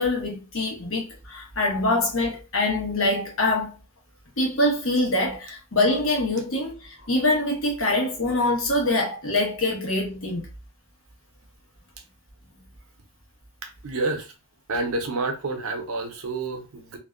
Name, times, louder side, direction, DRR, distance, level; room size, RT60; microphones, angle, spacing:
voice 1, 0.0-3.8 4.4-10.5, left 2 dB, 70° left, 0.9 m, -24 dB
voice 2, 13.6-14.3 14.7-17.0, right 3 dB, 85° right, 0.6 m, -29 dB
2.5 x 2.2 x 2.4 m
head